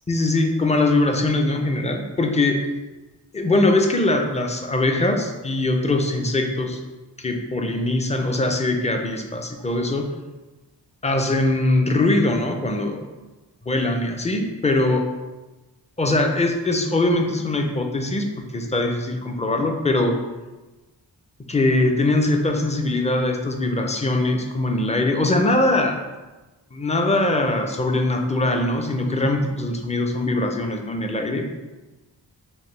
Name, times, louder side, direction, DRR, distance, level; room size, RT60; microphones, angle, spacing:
voice 1, 0.1-2.6 3.3-6.8 7.2-10.1 11.0-13.1 13.7-15.1 16.0-18.3 18.5-20.2 21.5-26.0 26.7-31.5, left 2 dB, 15° left, 3 dB, 0.4 m, -21 dB
5.1 x 2.1 x 3.2 m, 1.2 s
wide cardioid pair, 75°, 44 cm